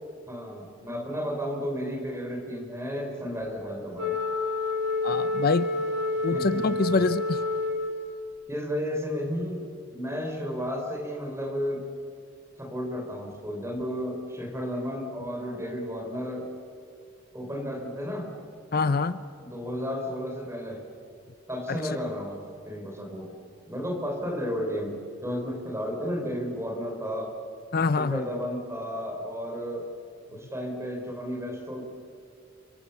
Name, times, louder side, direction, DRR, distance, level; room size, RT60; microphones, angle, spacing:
voice 1, 0.3-4.2 6.3-7.0 8.5-11.9 12.6-16.5 17.3-18.3 19.4-20.8 21.5-23.3 23.7-27.3 27.9-29.9 30.3-31.8, equal, 15° right, 2 dB, 4.3 m, -33 dB
Wind instrument woodwind instrument, 4.0-8.3, left 2 dB, 60° right, 2.4 m, -29 dB
voice 2, 5.0-5.7 6.2-7.4 18.7-19.2 27.7-28.2, left 4 dB, 50° left, 13 dB, 0.6 m, -25 dB
29.0 x 25.0 x 7.1 m, 2.4 s
head